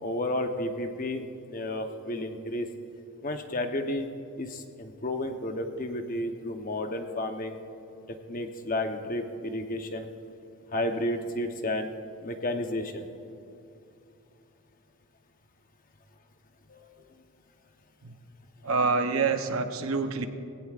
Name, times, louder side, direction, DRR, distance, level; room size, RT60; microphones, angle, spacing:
voice 1, 0.0-2.7 3.2-4.1 4.4-7.6 8.3-10.1 10.7-11.9 12.2-13.1 16.7-17.0, left 1 dB, 40° left, 5 dB, 0.9 m, -32 dB
voice 2, 18.6-20.3, right 4 dB, 70° right, 7 dB, 0.8 m, -26 dB
20.0 x 17.0 x 2.5 m, 2.7 s
head